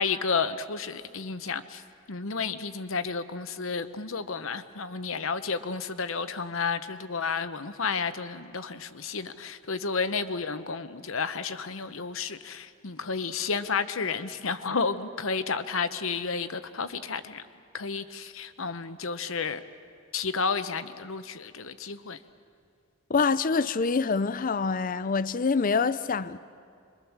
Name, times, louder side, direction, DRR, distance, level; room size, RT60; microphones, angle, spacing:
voice 1, 0.0-1.8 2.1-17.4 17.7-19.6 20.1-22.2, left 5 dB, 70° left, 1.0 m, -31 dB
voice 2, 23.1-26.4, left 4 dB, 40° left, 0.5 m, -25 dB
27.0 x 23.0 x 7.3 m
head